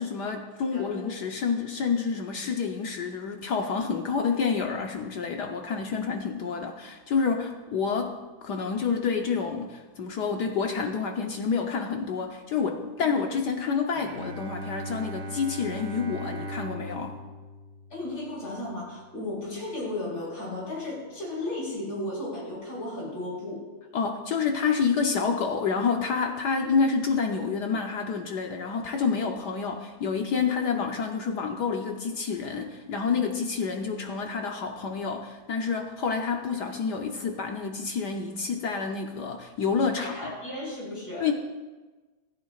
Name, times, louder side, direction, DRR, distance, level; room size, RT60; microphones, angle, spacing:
voice 1, 0.0-17.2 23.9-40.3 41.2-41.3, left 5 dB, 60° left, 3 dB, 1.2 m, -28 dB
voice 2, 0.7-1.1 13.0-13.1 17.9-23.6 40.0-41.3, left 1 dB, 45° left, -4 dB, 5.5 m, -35 dB
Bowed string instrument, 13.9-19.2, equal, 70° right, 2.0 m, -39 dB
27.0 x 9.3 x 2.4 m, 1.3 s
omnidirectional pair, 2.3 m